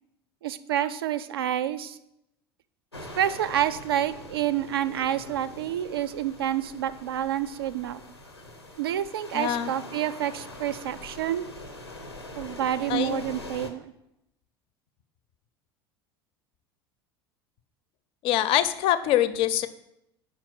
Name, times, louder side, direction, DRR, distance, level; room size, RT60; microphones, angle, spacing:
voice 1, 0.4-2.0 3.2-8.0 8.8-11.5 12.4-13.9, right 11 dB, 70° right, 14 dB, 0.4 m, -28 dB
sound 1, 2.9-13.7, left 1 dB, 90° left, 0.7 m, -43 dB
voice 2, 9.3-9.7 12.9-13.2 18.2-19.7, left 12 dB, 45° left, 14 dB, 0.5 m, -24 dB
5.2 x 4.3 x 5.9 m, 0.84 s
figure-of-eight pair, 70°, 13 cm